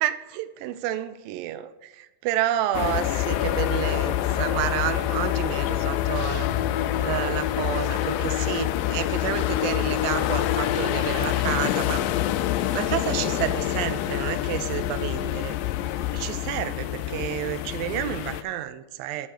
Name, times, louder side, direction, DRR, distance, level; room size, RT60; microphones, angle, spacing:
voice 1, 0.0-6.5 6.8-12.0 12.7-15.5 16.1-19.3, right 12 dB, 80° right, 12 dB, 2.2 m, -30 dB
sound 1, 2.7-18.4, left 13 dB, 80° left, 2.1 m, -26 dB
8.2 x 5.8 x 6.6 m, 1.0 s
omnidirectional pair, 4.2 m